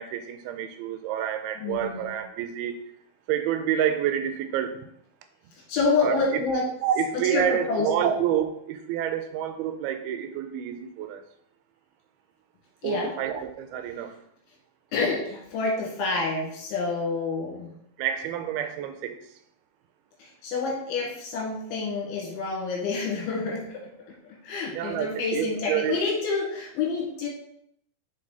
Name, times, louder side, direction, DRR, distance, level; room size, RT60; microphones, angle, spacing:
voice 1, 0.0-2.8 3.3-4.9 6.0-6.4 6.8-11.2 12.8-14.2 18.0-19.2 24.7-26.0, right 9 dB, 85° right, 8 dB, 2.5 m, -28 dB
voice 2, 1.6-2.1 5.7-6.7 7.3-8.1 12.8-13.1 14.9-17.8 20.2-23.8 24.4-27.3, left 4 dB, 75° left, -3 dB, 3.8 m, -28 dB
7.5 x 4.3 x 4.1 m, 0.72 s
omnidirectional pair, 4.5 m